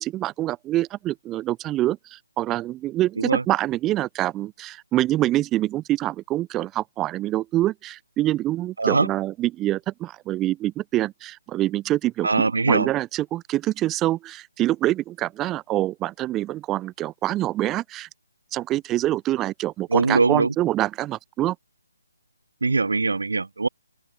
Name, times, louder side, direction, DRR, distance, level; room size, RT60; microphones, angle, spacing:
voice 1, 0.0-12.3 12.7-18.1 18.5-21.5, right 15 dB, 10° right, 6.7 m, -25 dB
voice 2, 12.2-12.9 19.9-20.5 22.6-23.7, right 3 dB, 85° right, 2.8 m, -21 dB
open air
hypercardioid pair, 165°, 0 cm